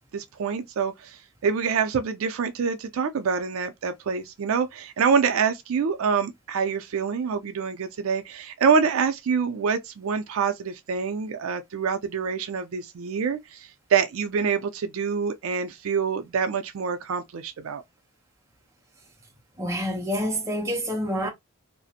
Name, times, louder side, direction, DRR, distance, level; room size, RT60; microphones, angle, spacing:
voice 1, 0.1-17.8, right 6 dB, 70° right, 0.4 m, -26 dB
voice 2, 19.6-21.3, equal, 15° right, 0.6 m, -27 dB
2.4 x 2.0 x 2.6 m
head